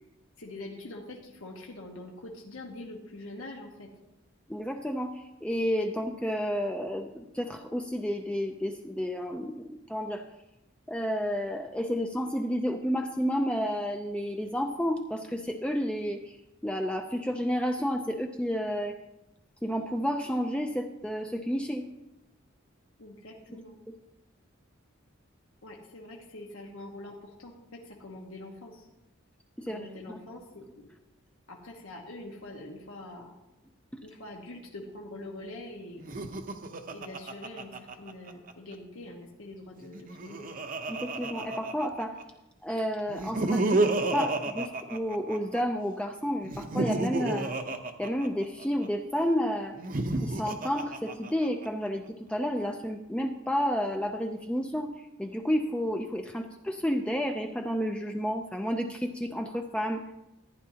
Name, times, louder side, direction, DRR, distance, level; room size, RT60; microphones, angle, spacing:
voice 1, 0.4-3.9 23.0-23.8 25.6-28.9 29.7-30.9 31.5-33.3 34.0-36.0 36.9-40.5, left 2 dB, 90° left, -1 dB, 1.4 m, -44 dB
voice 2, 4.5-10.2 10.9-16.4 16.6-19.0 19.6-21.8 29.6-29.8 30.1-30.2 40.9-42.2 42.6-43.8 44.1-47.5 48.0-49.8 50.2-54.9 55.2-60.0, equal, 5° left, 4 dB, 0.4 m, -31 dB
Laughter, 36.0-38.5 39.8-42.2 43.1-45.6 46.4-48.9 49.7-51.7, right 2 dB, 40° right, 0.7 m, -31 dB
15.0 x 10.0 x 2.8 m, 0.94 s
head